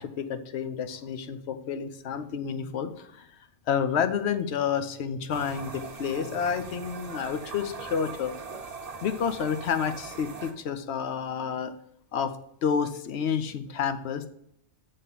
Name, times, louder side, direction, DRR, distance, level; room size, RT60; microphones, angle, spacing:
voice 1, 0.0-3.3 3.7-8.3 9.0-11.7 12.1-12.3 12.6-14.3, left 7 dB, 70° left, 9 dB, 0.9 m, -29 dB
sound 1, 5.3-10.5, right 4 dB, 35° right, 0.9 m, -41 dB
8.2 x 3.7 x 5.7 m, 0.75 s
omnidirectional pair, 1.2 m